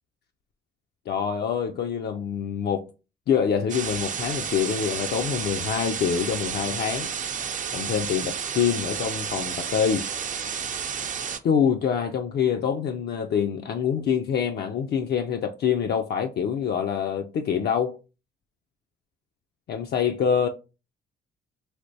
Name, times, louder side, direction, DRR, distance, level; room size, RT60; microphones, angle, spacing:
voice 1, 1.1-2.9 3.3-7.1 7.7-10.1 11.4-18.0 19.7-20.5, left 7 dB, 55° left, 0.4 m, -25 dB
sound 1, 3.7-11.4, right 7 dB, 40° right, 0.4 m, -31 dB
3.3 x 2.9 x 2.7 m
cardioid pair, 90°, 20 cm